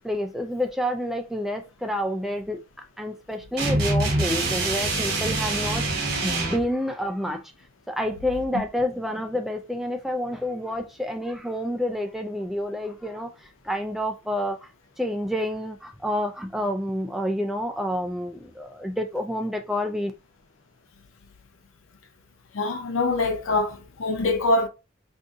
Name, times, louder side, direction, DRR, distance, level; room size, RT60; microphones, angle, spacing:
voice 1, 0.0-7.4 7.9-14.7 15.0-20.1, equal, ahead, 0.3 m, -29 dB
sound 1, 3.6-6.7, right 2 dB, 50° right, 1.0 m, -25 dB
voice 2, 22.5-24.7, left 2 dB, 90° left, 0.6 m, -24 dB
2.7 x 2.5 x 3.5 m
head